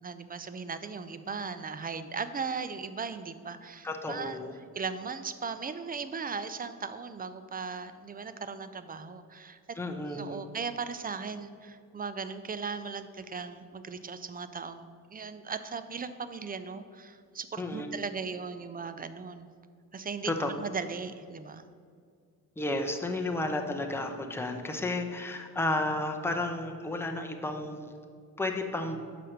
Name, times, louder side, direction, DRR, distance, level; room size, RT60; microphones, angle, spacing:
voice 1, 0.0-4.4 4.7-9.8 10.1-19.5 19.9-21.6, right 5 dB, 25° right, 12 dB, 0.5 m, -38 dB
voice 2, 3.8-4.5 9.8-10.4 17.6-17.9 20.2-20.5 22.6-27.9 28.4-29.0, left 2 dB, 5° left, 4 dB, 0.8 m, -32 dB
5.6 x 5.1 x 6.5 m, 2.2 s
supercardioid pair, 65°, 40 cm